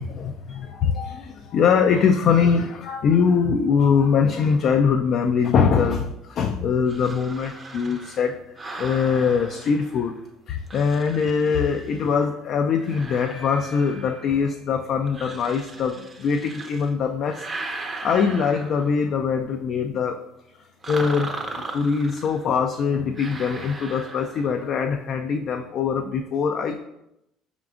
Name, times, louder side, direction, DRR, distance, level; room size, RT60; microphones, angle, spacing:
voice 1, 0.0-8.4 8.8-10.2 10.5-20.2 20.9-21.4 21.7-26.8, left 6 dB, 55° left, 5 dB, 0.3 m, -22 dB
sound 1, 6.9-10.2 10.7-12.2 12.8-14.5 15.1-16.9 17.2-19.2 20.8-22.5 23.2-24.7, right 2 dB, 25° right, 0.6 m, -38 dB
4.8 x 3.6 x 2.3 m, 0.84 s
hypercardioid pair, 75°, 0 cm